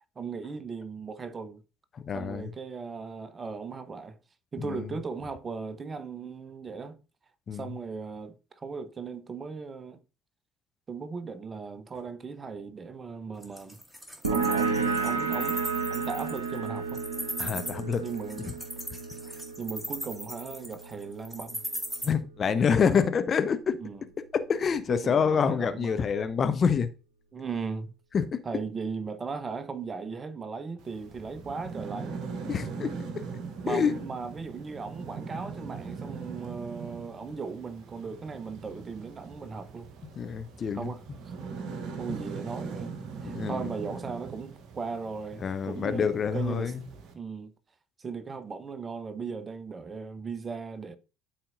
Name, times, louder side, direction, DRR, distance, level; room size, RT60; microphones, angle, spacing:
voice 1, 0.2-1.6 2.1-4.2 4.5-7.0 7.5-10.0 10.9-13.8 14.3-15.6 15.9-17.0 18.0-18.6 19.6-21.6 23.8-24.0 24.9-26.1 27.3-27.9 28.4-32.2 33.6-39.9 40.7-41.0 42.0-46.7 47.1-47.5 48.0-51.0, right 5 dB, 30° right, 0.7 m, -37 dB
voice 2, 1.9-2.5 4.6-4.9 7.5-7.7 17.4-18.0 22.0-23.8 24.3-26.9 28.1-28.4 32.5-33.2 33.7-33.9 40.2-40.9 43.2-43.7 45.4-46.8, left 6 dB, 35° left, 0.6 m, -27 dB
Wild animals, 13.4-22.1, equal, 5° right, 1.9 m, -37 dB
sound 1, 14.2-21.5, right 5 dB, 80° right, 0.9 m, -32 dB
sound 2, 30.8-47.1, right 5 dB, 55° right, 0.9 m, -41 dB
12.0 x 4.2 x 2.5 m
figure-of-eight pair, 55°, 0 cm